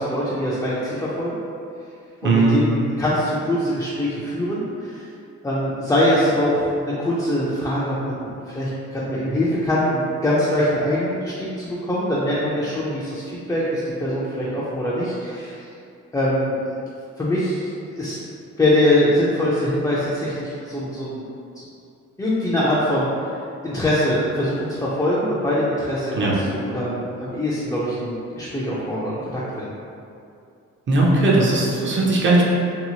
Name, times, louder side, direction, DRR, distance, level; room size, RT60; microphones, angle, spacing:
voice 1, 0.0-1.4 2.2-5.0 5.4-15.6 16.1-16.7 17.2-18.2 18.6-21.2 21.6-21.7 22.2-23.4 23.6-29.7, left 1 dB, 10° left, -8 dB, 0.4 m, -23 dB
voice 2, 2.2-2.6 26.1-26.3 30.9-32.4, right 2 dB, 40° right, -4 dB, 0.6 m, -18 dB
2.8 x 2.0 x 2.8 m, 2.5 s
cardioid pair, 90°, 30 cm